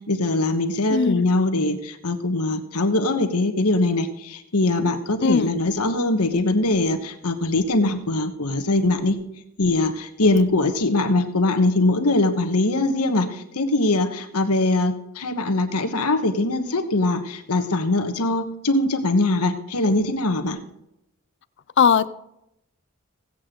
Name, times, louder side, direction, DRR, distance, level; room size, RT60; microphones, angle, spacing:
voice 1, 0.1-9.2 9.6-20.6, left 2 dB, 85° left, 6 dB, 1.3 m, -22 dB
voice 2, 0.9-1.2 5.2-5.5 21.8-22.1, left 6 dB, 50° left, 15 dB, 0.5 m, -18 dB
16.5 x 8.6 x 3.8 m, 0.83 s
head